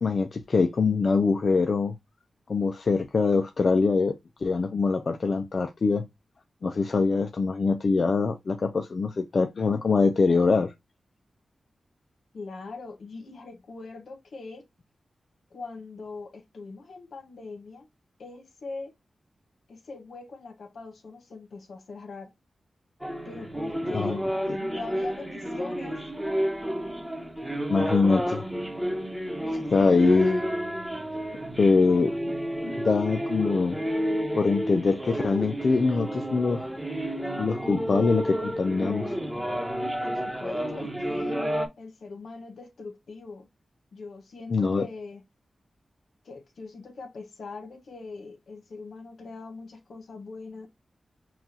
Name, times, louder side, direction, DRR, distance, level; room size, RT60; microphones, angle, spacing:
voice 1, 0.0-2.0 2.5-6.1 6.6-10.7 23.9-24.2 24.5-24.6 27.7-28.4 29.7-30.4 31.6-32.1 32.6-33.8 34.3-36.6 37.4-39.2 44.5-44.9, left 4 dB, 60° left, 0.5 m, -23 dB
voice 2, 12.3-14.6 15.5-17.9 18.2-18.9 19.7-22.3 23.2-24.2 24.6-26.0 29.5-30.0 40.0-41.4 41.8-43.5 43.9-45.2 46.2-50.7, left 3 dB, 85° left, 1.3 m, -41 dB
sound 1, 23.0-41.7, equal, 5° right, 1.0 m, -31 dB
5.8 x 2.4 x 2.8 m
cardioid pair, 65°, 0 cm